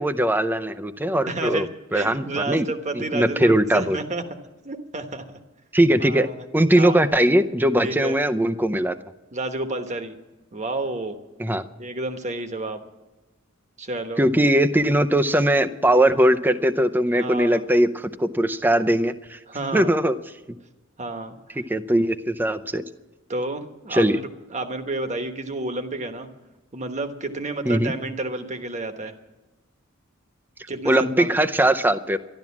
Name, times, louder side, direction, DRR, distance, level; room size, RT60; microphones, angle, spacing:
voice 1, 0.0-1.7 1.9-2.7 2.9-4.0 5.7-6.3 6.5-8.9 11.4-11.6 14.2-19.4 19.7-20.1 20.5-20.6 21.6-22.8 23.9-24.2 27.7-27.9 30.8-32.2, right 1 dB, 10° right, 10 dB, 0.6 m, -20 dB
voice 2, 1.3-4.2 4.6-5.4 6.0-6.3 6.8-7.0 7.8-8.1 9.3-10.1 10.5-11.2 11.8-12.8 13.8-14.2 17.1-17.6 19.5-19.9 21.0-21.6 23.3-24.0 24.5-26.3 26.7-29.1 30.7-31.4, right 2 dB, 35° right, 7 dB, 1.2 m, -30 dB
12.5 x 12.0 x 7.2 m, 1.1 s
head